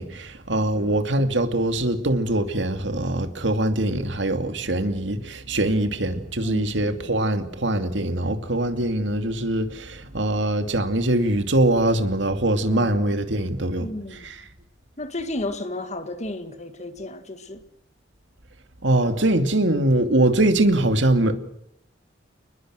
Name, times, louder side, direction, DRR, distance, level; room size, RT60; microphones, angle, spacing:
voice 1, 0.0-14.3 18.8-21.4, right 1 dB, 70° right, 2.5 m, -23 dB
voice 2, 0.6-1.0 6.4-7.0 12.7-12.9 13.8-14.3 15.0-17.6, left 1 dB, 40° left, 2.0 m, -33 dB
30.0 x 20.5 x 6.4 m
head